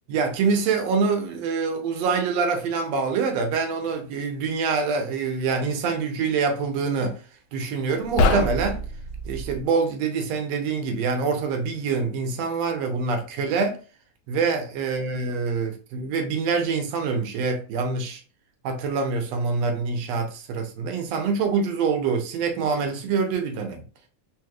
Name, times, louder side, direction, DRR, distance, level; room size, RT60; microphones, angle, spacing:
voice 1, 0.1-7.2 7.5-8.9 9.3-13.8 14.3-18.2 18.6-23.8, right 5 dB, 70° right, 1.8 m, -25 dB
sound 1, 8.0-9.6, left 2 dB, 85° left, 1.4 m, -25 dB
4.5 x 3.1 x 2.3 m
omnidirectional pair, 3.4 m